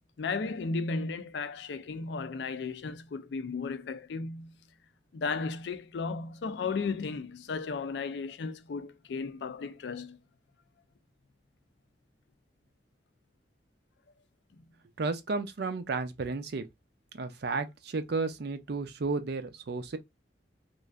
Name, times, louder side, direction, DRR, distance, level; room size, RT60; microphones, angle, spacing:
voice 1, 0.2-4.6 5.1-10.2, left 4 dB, 65° left, 0.4 m, -35 dB
voice 2, 15.0-16.6 17.1-20.0, right 3 dB, 65° right, 0.5 m, -33 dB
3.1 x 2.5 x 2.3 m
head